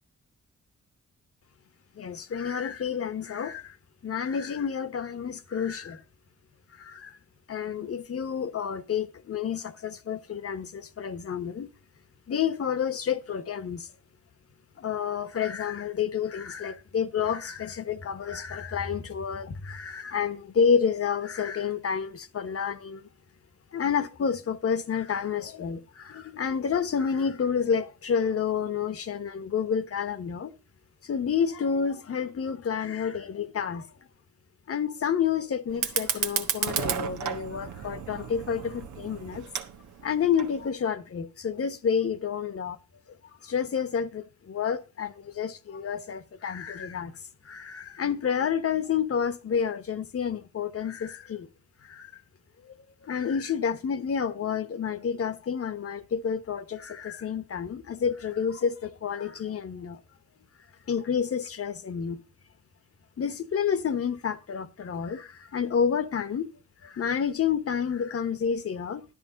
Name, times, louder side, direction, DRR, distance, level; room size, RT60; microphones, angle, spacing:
voice 1, 2.0-3.8 4.0-6.0 6.8-7.2 7.5-11.7 12.3-13.9 14.8-23.0 23.7-30.5 31.0-33.9 34.7-39.5 40.0-42.8 43.4-47.1 47.4-51.5 51.8-52.1 53.0-60.0 60.9-62.2 63.2-66.5 66.8-69.0, left 7 dB, 55° left, 1.3 m, -29 dB
Fire, 35.7-40.7, right 8 dB, 85° right, 1.3 m, -33 dB
12.5 x 10.5 x 4.0 m
cardioid pair, 110°, 29 cm